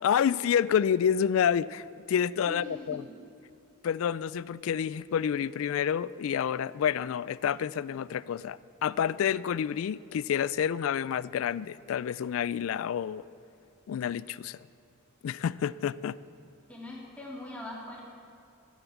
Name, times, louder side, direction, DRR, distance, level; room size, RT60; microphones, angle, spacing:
voice 1, 0.0-3.1 3.8-13.2 13.9-14.7 15.2-16.2, left 8 dB, 75° left, 19 dB, 0.3 m, -29 dB
voice 2, 2.5-3.0 16.7-18.0, left 1 dB, 5° left, -5 dB, 3.0 m, -41 dB
14.0 x 10.5 x 7.1 m, 2.6 s
head